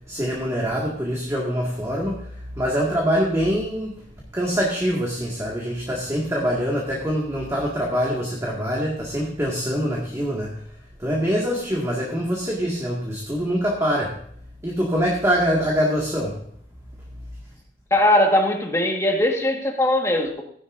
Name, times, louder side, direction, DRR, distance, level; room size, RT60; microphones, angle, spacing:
voice 1, 0.0-4.1 4.3-10.6 11.0-14.2 14.6-16.4, equal, 15° right, 2.0 m, -24 dB
voice 2, 17.9-20.4, left 1 dB, 15° left, 1.6 m, -20 dB
15.5 x 11.0 x 2.6 m
head